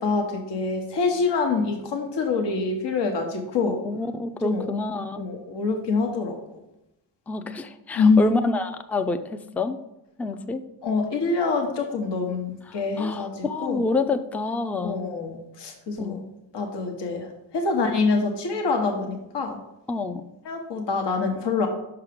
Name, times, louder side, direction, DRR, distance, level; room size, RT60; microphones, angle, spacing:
voice 1, 0.0-3.8 4.4-4.7 5.1-6.6 7.9-8.3 10.8-13.8 14.8-16.2 16.5-19.6 20.4-21.7, left 4 dB, 60° left, 2 dB, 1.1 m, -25 dB
voice 2, 3.6-5.3 7.3-9.8 10.2-10.6 12.7-15.0 16.0-16.2 19.9-20.3, left 3 dB, 5° left, 9 dB, 0.4 m, -28 dB
5.8 x 4.7 x 5.0 m, 0.89 s
cardioid pair, 60°, 47 cm